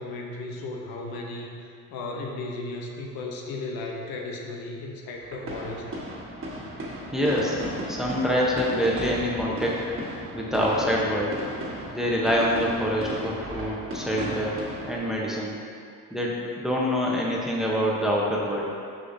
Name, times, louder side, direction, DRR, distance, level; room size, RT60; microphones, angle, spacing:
voice 1, 0.0-5.9, left 2 dB, 80° left, 0 dB, 0.9 m, -35 dB
sound 1, 5.2-15.0, right 1 dB, 35° right, 1.4 m, -35 dB
voice 2, 7.1-7.6 7.9-9.8 10.3-11.4 11.9-14.6 14.9-15.6 16.1-18.7, equal, ahead, -4 dB, 0.9 m, -25 dB
6.6 x 5.6 x 2.7 m, 2.3 s
cardioid pair, 95°, 36 cm